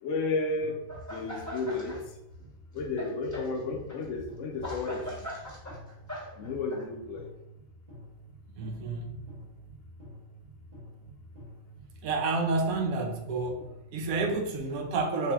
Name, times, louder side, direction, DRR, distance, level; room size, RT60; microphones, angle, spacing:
voice 1, 0.0-0.8 1.1-2.0 2.7-5.3 6.4-7.3, left 3 dB, 70° left, 3 dB, 0.9 m, -32 dB
sound 1, 0.6-14.6, equal, 30° right, 1.2 m, -50 dB
sound 2, 0.9-2.0 2.3-6.8, left 1 dB, 15° left, 0.8 m, -41 dB
voice 2, 8.6-9.2 12.0-15.3, right 3 dB, 85° right, 4 dB, 1.0 m, -30 dB
3.6 x 2.5 x 3.4 m, 0.88 s
omnidirectional pair, 1.4 m